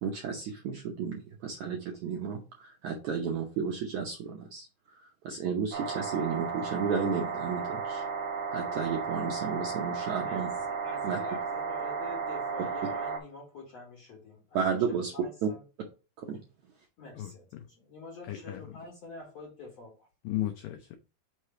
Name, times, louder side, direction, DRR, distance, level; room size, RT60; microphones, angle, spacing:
voice 1, 0.0-4.7 4.9-8.0 8.5-10.5 11.0-11.2 14.5-15.1 15.4-15.5 16.2-16.4, right 6 dB, 80° right, 1.7 m, -33 dB
sound 1, 5.7-13.2, right 5 dB, 60° right, 1.7 m, -34 dB
voice 2, 10.2-15.6 17.0-20.1, left 2 dB, 50° left, 2.2 m, -47 dB
voice 3, 17.2-17.7 18.2-18.8 20.2-21.0, left 14 dB, 85° left, 1.9 m, -36 dB
5.9 x 3.2 x 5.6 m
omnidirectional pair, 4.6 m